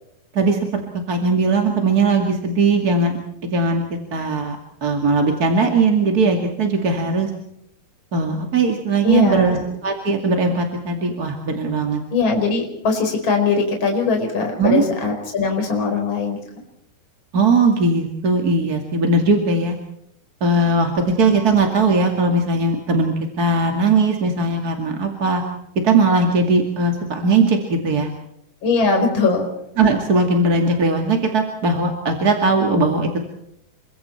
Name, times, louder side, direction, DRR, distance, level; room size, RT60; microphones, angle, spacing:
voice 1, 0.3-3.2 3.5-4.6 4.8-7.3 8.1-9.6 9.8-12.0 14.6-14.8 17.3-19.7 20.4-25.4 25.8-28.1 29.8-33.2, right 3 dB, 30° right, 3 dB, 2.2 m, -19 dB
voice 2, 9.0-9.6 12.1-16.4 28.6-29.5, left 4 dB, 30° left, 3 dB, 5.2 m, -20 dB
29.0 x 24.5 x 4.5 m, 0.76 s
omnidirectional pair, 4.3 m